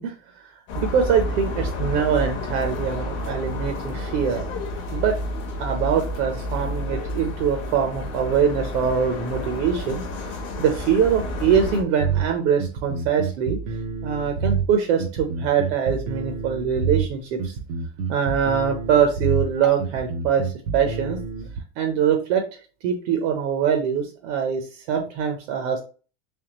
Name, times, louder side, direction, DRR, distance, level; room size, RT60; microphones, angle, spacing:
voice 1, 0.0-4.4 4.9-5.2 5.6-13.6 14.0-17.5 18.1-21.2 21.8-22.4 22.8-25.8, right 7 dB, 65° right, 4 dB, 0.8 m, -23 dB
sound 1, 0.7-11.8, left 1 dB, 30° left, 0.7 m, -30 dB
sound 2, 12.0-21.6, right 6 dB, 35° right, 0.4 m, -28 dB
3.5 x 3.2 x 2.9 m, 0.36 s
cardioid pair, 180°, 40 cm